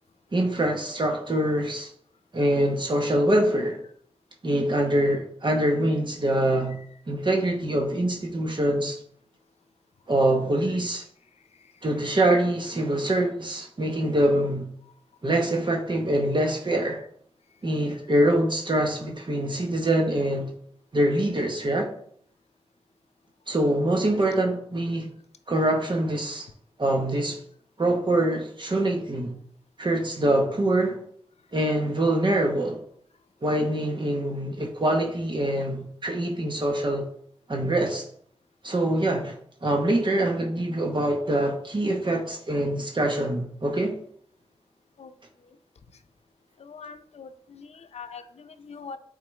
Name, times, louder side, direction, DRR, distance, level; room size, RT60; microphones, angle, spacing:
voice 1, 0.3-1.9 2.3-3.8 4.4-6.8 7.1-9.0 10.1-11.0 11.8-14.7 15.2-17.0 17.6-20.5 20.9-21.9 23.5-25.1 25.5-26.5 26.8-27.4 27.8-29.3 29.8-31.0 31.5-32.8 33.4-37.1 37.5-38.1 38.6-44.0, right 1 dB, 50° right, 1.1 m, -24 dB
voice 2, 46.6-49.0, left 5 dB, 85° left, 0.5 m, -43 dB
8.1 x 3.9 x 3.2 m
cardioid pair, 50°, 11 cm